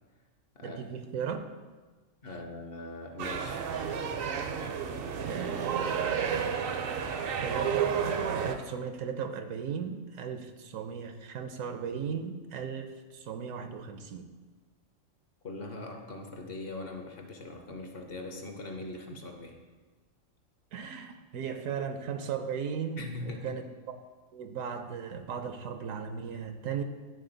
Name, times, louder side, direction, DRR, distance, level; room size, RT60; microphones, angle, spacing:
voice 1, 0.6-1.5 5.2-6.4 7.4-14.3 19.1-19.2 20.7-24.0 24.3-26.8, right 7 dB, 80° right, 8 dB, 1.0 m, -37 dB
voice 2, 2.2-3.6 15.4-19.6 23.0-23.6, left 2 dB, 55° left, 3 dB, 0.8 m, -41 dB
sound 1, 3.2-8.6, right 7 dB, 60° right, 0.6 m, -31 dB
10.5 x 3.8 x 3.9 m, 1.3 s
omnidirectional pair, 1.4 m